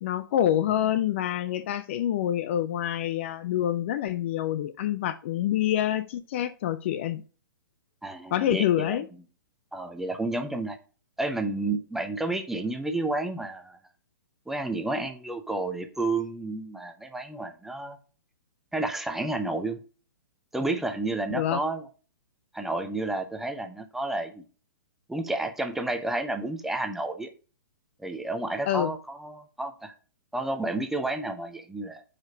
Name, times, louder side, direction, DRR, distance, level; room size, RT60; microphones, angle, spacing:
voice 1, 0.0-7.2 8.3-9.1 21.3-21.6 28.7-28.9, left 11 dB, 35° left, 0.4 m, -27 dB
voice 2, 8.0-9.0 9.7-10.8 11.2-13.8 14.5-18.0 18.7-19.8 20.5-21.8 22.5-24.4 25.1-27.3 28.0-29.9 30.3-32.0, right 2 dB, 5° right, 0.6 m, -31 dB
6.3 x 5.0 x 5.0 m
figure-of-eight pair, 120°, 11 cm